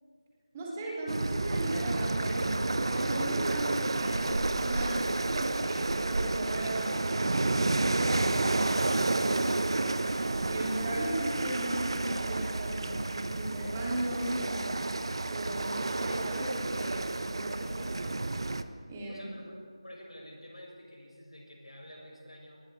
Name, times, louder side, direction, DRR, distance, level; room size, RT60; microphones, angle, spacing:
voice 1, 0.5-5.0 5.3-14.8 15.3-18.2 18.9-19.3, right 1 dB, 20° right, -4 dB, 3.2 m, -36 dB
sound 1, 1.1-18.6, right 2 dB, 55° right, 1.0 m, -30 dB
voice 2, 19.1-22.6, equal, 80° left, 0 dB, 6.8 m, -49 dB
28.0 x 20.0 x 4.9 m, 2.1 s
figure-of-eight pair, 165°, 3 cm